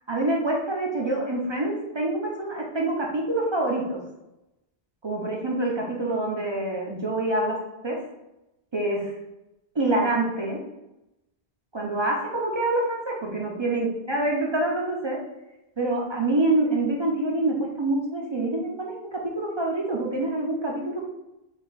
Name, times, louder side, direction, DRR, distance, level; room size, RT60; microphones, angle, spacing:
voice 1, 0.1-4.0 5.0-7.6 7.8-8.0 8.7-9.1 9.7-10.6 11.7-15.2 15.8-21.1, right 2 dB, 35° right, -2 dB, 0.5 m, -26 dB
3.5 x 2.3 x 4.0 m, 0.92 s
omnidirectional pair, 1.0 m